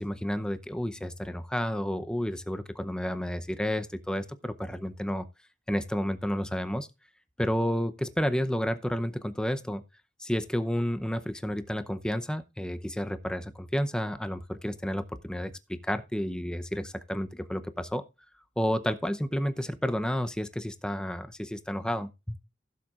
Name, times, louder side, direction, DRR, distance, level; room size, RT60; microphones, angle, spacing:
voice 1, 0.0-5.3 5.7-6.9 7.4-9.8 10.2-18.0 18.6-22.4, equal, 5° left, 0.6 m, -31 dB
16.0 x 7.4 x 2.4 m
head